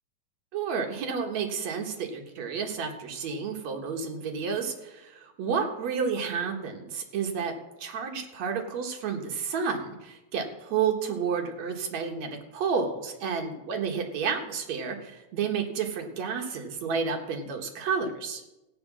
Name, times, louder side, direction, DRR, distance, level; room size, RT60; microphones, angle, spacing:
voice 1, 0.5-7.5 7.8-18.4, right 6 dB, 70° right, 3 dB, 2.7 m, -31 dB
15.0 x 9.1 x 6.1 m, 0.97 s
omnidirectional pair, 3.4 m